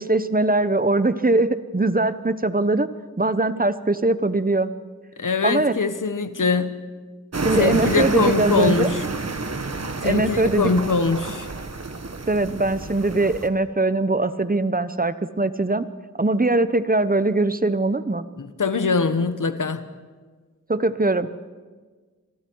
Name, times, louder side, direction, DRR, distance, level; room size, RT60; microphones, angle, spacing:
voice 1, 0.0-2.9 3.2-4.7 5.4-5.7 7.4-8.9 10.0-10.8 12.3-15.9 16.2-18.2 20.7-21.3, right 2 dB, 30° right, 13 dB, 1.0 m, -21 dB
voice 2, 5.2-6.7 7.6-9.0 10.0-11.5 18.4-19.8, left 4 dB, 80° left, 10 dB, 1.3 m, -22 dB
sound 1, 7.3-13.5, right 3 dB, 55° right, 1.5 m, -29 dB
27.5 x 22.0 x 4.7 m, 1.4 s
wide cardioid pair, 45°, 31 cm